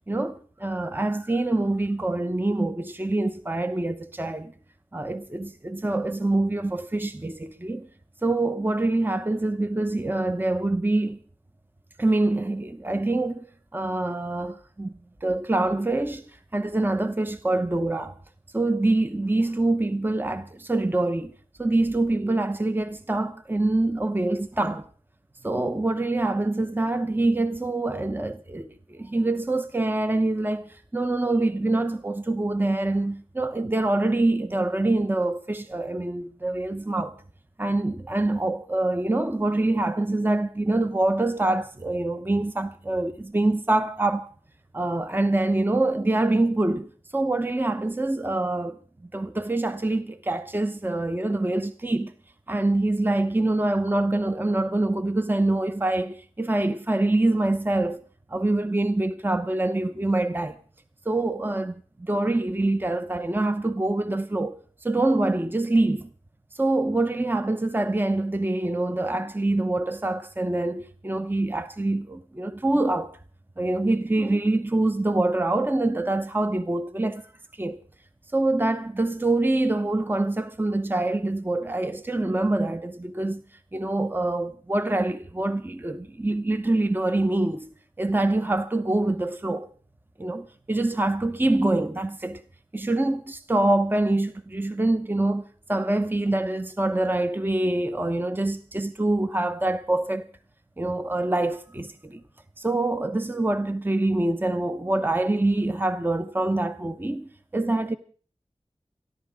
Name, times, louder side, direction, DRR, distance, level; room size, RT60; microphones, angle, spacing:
voice 1, 0.1-4.5 4.9-7.9 8.2-11.2 12.0-13.5 13.7-14.9 15.2-16.2 16.5-18.1 18.5-21.3 21.6-24.9 25.4-37.1 37.6-44.3 44.7-52.1 52.5-58.0 58.3-60.6 61.1-64.6 64.8-66.1 66.5-73.1 73.6-77.2 77.6-77.8 78.3-83.4 83.7-89.7 90.2-92.4 92.7-100.3 100.8-102.2 102.6-107.9, right 2 dB, 15° right, 0.9 m, -25 dB
28.5 x 11.5 x 3.6 m
wide cardioid pair, 55°, 12 cm